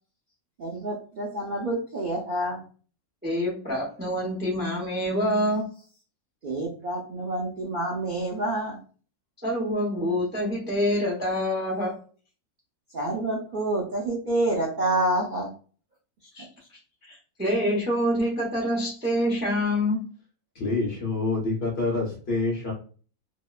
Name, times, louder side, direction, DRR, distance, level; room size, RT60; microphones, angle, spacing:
voice 1, 0.6-2.6 6.4-8.8 12.9-15.5, right 1 dB, 85° right, -2 dB, 0.4 m, -28 dB
voice 2, 3.2-5.7 9.4-12.0 16.3-16.5 17.1-20.0, equal, 15° right, -4 dB, 0.4 m, -26 dB
voice 3, 20.5-22.7, left 3 dB, 50° left, -2 dB, 1.0 m, -27 dB
2.8 x 2.1 x 2.3 m, 0.40 s
omnidirectional pair, 1.6 m